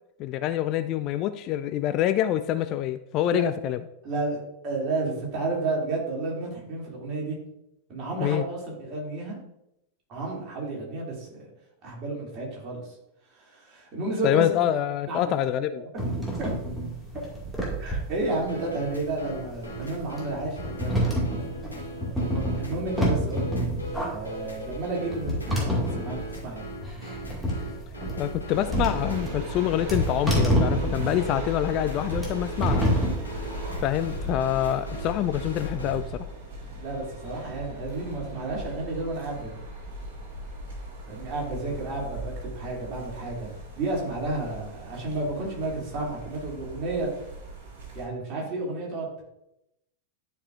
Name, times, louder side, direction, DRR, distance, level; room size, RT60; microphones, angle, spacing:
voice 1, 0.2-3.8 8.2-8.4 14.2-15.9 28.2-32.9 33.8-36.3, left 12 dB, 40° left, 12 dB, 0.3 m, -26 dB
voice 2, 4.0-7.4 7.9-9.4 10.1-11.5 11.8-13.0 13.3-14.7 15.1-15.3 16.2-16.5 17.8-21.4 22.2-23.6 24.0-25.7 25.9-26.7 36.8-39.5 41.1-47.3 47.9-49.2, right 2 dB, 35° right, -3 dB, 2.7 m, -32 dB
sound 1, 16.0-34.3, equal, ahead, 2.0 m, -28 dB
sound 2, 18.2-36.0, left 1 dB, 80° left, 1.5 m, -39 dB
sound 3, 28.5-48.1, right 1 dB, 55° right, 2.3 m, -38 dB
11.5 x 4.8 x 2.5 m, 0.85 s
figure-of-eight pair, 90°, 0 cm